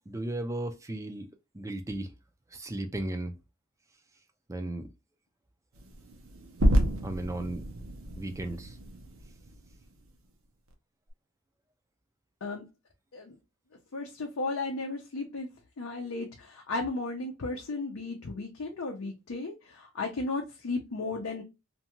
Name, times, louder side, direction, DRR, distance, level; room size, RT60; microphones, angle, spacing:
voice 1, 0.1-1.3 1.5-2.2 2.5-3.4 4.5-4.9 7.0-7.7 8.2-8.8, right 1 dB, 15° right, 0.4 m, -35 dB
sound 1, 5.8-10.1, equal, 70° right, 0.6 m, -30 dB
voice 2, 13.9-15.5 15.8-21.4, left 3 dB, 70° left, 0.5 m, -35 dB
2.6 x 2.3 x 2.8 m
head